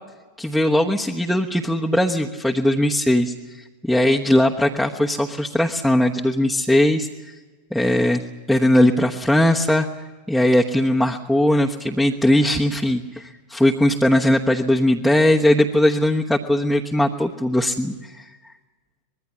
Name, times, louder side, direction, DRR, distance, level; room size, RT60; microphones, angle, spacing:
voice 1, 0.4-7.3 7.7-9.9 10.3-18.3, left 1 dB, ahead, -1 dB, 1.2 m, -19 dB
25.0 x 21.0 x 7.3 m, 1.3 s
figure-of-eight pair, 90°, 0 cm